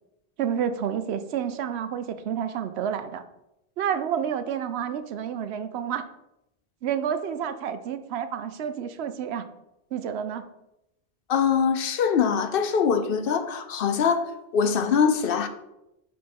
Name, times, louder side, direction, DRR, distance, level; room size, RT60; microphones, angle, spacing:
voice 1, 0.4-3.2 3.8-6.1 6.8-9.5 9.9-10.5, right 8 dB, 80° right, 0.8 m, -29 dB
voice 2, 11.3-15.5, left 6 dB, 65° left, 0.7 m, -23 dB
5.3 x 3.8 x 5.8 m
omnidirectional pair, 1.1 m